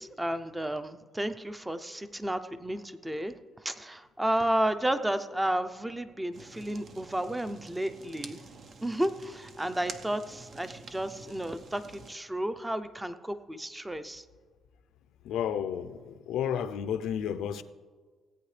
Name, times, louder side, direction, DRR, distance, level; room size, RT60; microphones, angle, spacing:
voice 1, 0.0-3.3 3.6-8.4 8.8-14.2, right 1 dB, 10° right, 0.6 m, -32 dB
Fire, 6.3-12.1, right 4 dB, 55° right, 0.8 m, -48 dB
voice 2, 15.2-17.6, left 9 dB, 85° left, 0.5 m, -32 dB
17.0 x 8.8 x 3.3 m
cardioid pair, 90°, 0 cm